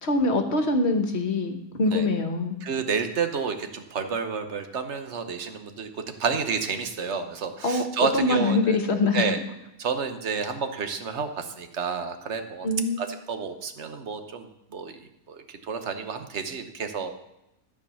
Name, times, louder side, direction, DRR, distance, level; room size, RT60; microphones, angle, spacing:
voice 1, 0.0-2.6 7.6-7.8 8.1-9.4 12.6-13.0, left 2 dB, 45° left, 6 dB, 1.3 m, -24 dB
voice 2, 2.6-5.9 6.2-8.8 9.1-9.4 9.8-12.7 13.0-15.0 15.3-17.2, right 5 dB, 50° right, 8 dB, 1.1 m, -30 dB
13.0 x 4.7 x 7.0 m, 0.88 s
omnidirectional pair, 1.7 m